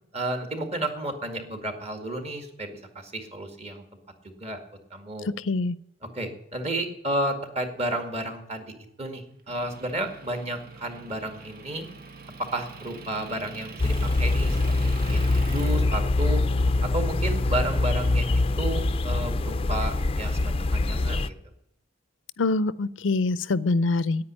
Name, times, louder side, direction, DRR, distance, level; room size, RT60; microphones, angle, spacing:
voice 1, 0.1-3.8 4.4-4.6 4.9-5.3 6.1-8.7 9.0-11.9 12.4-14.6 14.8-16.4 16.8-18.2 18.6-21.3, right 1 dB, 35° right, 6 dB, 2.1 m, -32 dB
voice 2, 5.3-5.8 22.4-24.2, left 3 dB, 80° left, 18 dB, 0.6 m, -25 dB
Motor vehicle (road) / Engine, 9.5-15.8, right 4 dB, 50° right, 1.2 m, -43 dB
sound 1, 13.8-21.3, left 2 dB, 30° left, 0.5 m, -24 dB
9.7 x 9.1 x 10.0 m, 0.80 s
head